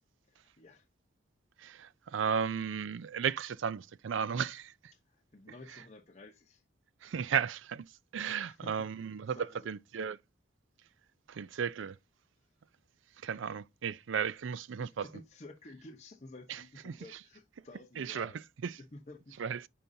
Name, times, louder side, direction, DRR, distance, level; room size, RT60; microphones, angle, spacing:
voice 1, 0.3-0.9 4.9-6.6 8.3-8.9 9.3-9.7 14.8-18.4 18.8-19.4, left 2 dB, 35° left, 0.9 m, -52 dB
voice 2, 1.6-4.7 7.0-7.9 8.1-9.4 9.7-10.2 11.3-11.9 13.2-15.0 16.9-17.0 18.0-18.3 18.6-18.7 19.4-19.6, right 7 dB, 70° right, 0.4 m, -34 dB
10.0 x 5.3 x 2.7 m
head